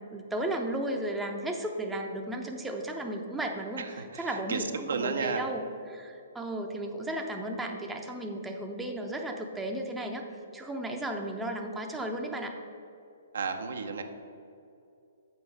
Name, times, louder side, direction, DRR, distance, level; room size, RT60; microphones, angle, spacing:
voice 1, 0.0-10.2 10.5-12.6, right 1 dB, 5° right, 2 dB, 0.7 m, -34 dB
voice 2, 3.8-5.5 13.3-14.0, right 4 dB, 65° right, 6 dB, 0.6 m, -33 dB
7.0 x 4.7 x 6.4 m, 2.6 s
figure-of-eight pair, 120°, 0 cm